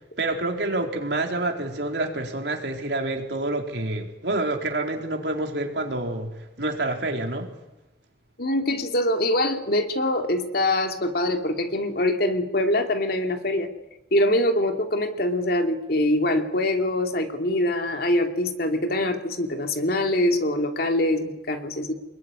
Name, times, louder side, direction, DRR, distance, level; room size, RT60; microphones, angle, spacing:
voice 1, 0.2-7.5, right 2 dB, 70° right, 2 dB, 4.1 m, -28 dB
voice 2, 8.4-13.7 14.1-21.9, left 1 dB, 60° left, 4 dB, 2.8 m, -24 dB
26.5 x 21.5 x 9.9 m, 1.0 s
head